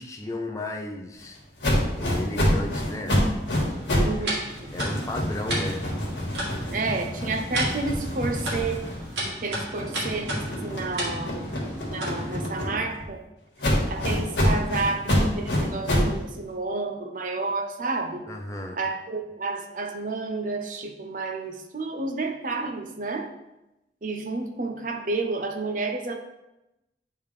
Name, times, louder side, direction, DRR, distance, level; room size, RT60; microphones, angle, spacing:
voice 1, 0.0-1.4 1.9-3.2 4.7-5.8 18.3-18.8, left 2 dB, 15° left, 2 dB, 0.5 m, -34 dB
sound 1, 1.6-4.2 4.5-9.3 9.7-13.0 13.6-16.2, equal, 85° left, 1.5 m, -27 dB
sound 2, 3.7-12.5, right 1 dB, 75° right, 2.0 m, -34 dB
voice 2, 4.0-4.7 6.7-8.9 9.4-11.4 11.9-13.3 13.9-18.3 18.7-23.3 24.0-26.2, right 3 dB, 45° right, 4 dB, 0.6 m, -30 dB
8.7 x 3.5 x 3.2 m, 0.92 s
head